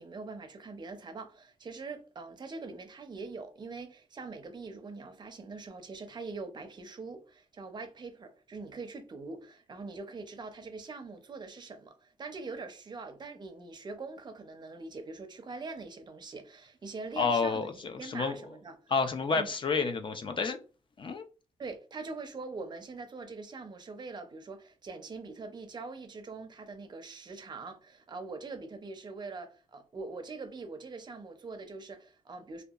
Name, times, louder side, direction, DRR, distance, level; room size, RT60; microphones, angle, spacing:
voice 1, 0.0-18.9 19.3-19.5 21.6-32.6, right 3 dB, 35° right, 0.5 m, -43 dB
voice 2, 17.2-18.3 18.9-20.6 21.0-21.2, left 5 dB, 40° left, 0.4 m, -30 dB
2.7 x 2.3 x 2.3 m
wide cardioid pair, 125°, 13 cm